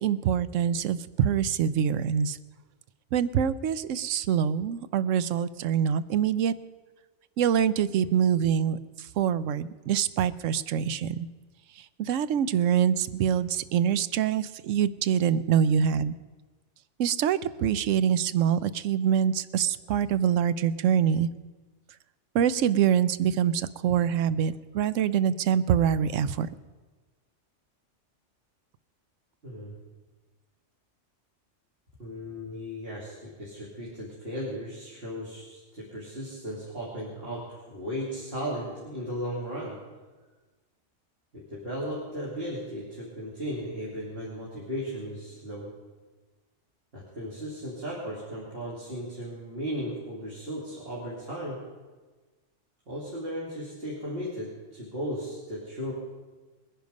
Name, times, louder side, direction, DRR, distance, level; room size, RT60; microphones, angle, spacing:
voice 1, 0.0-2.4 3.1-6.5 7.4-8.8 9.2-11.3 12.0-16.1 17.0-21.3 22.3-26.5, right 8 dB, 90° right, 15 dB, 1.0 m, -25 dB
voice 2, 29.4-29.8 32.0-39.8 41.3-45.7 46.9-51.6 52.9-55.9, equal, 55° right, -6 dB, 3.0 m, -36 dB
20.5 x 10.5 x 5.2 m, 1.3 s
omnidirectional pair, 1.3 m